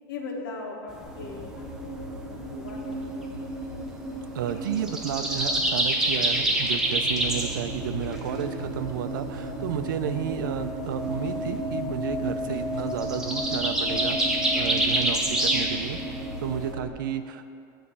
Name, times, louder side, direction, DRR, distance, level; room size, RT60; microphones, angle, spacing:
voice 1, 0.1-1.7 2.0-3.4, left 3 dB, 85° left, 0 dB, 1.4 m, -39 dB
sound 1, 0.9-16.7, right 1 dB, 5° right, 0.5 m, -28 dB
sound 2, 1.0-16.9, equal, 35° left, 2.0 m, -34 dB
voice 2, 4.3-14.2 14.6-16.0 16.4-17.5, right 9 dB, 85° right, 9 dB, 0.5 m, -32 dB
9.5 x 3.2 x 6.7 m, 2.4 s
supercardioid pair, 170°, 11 cm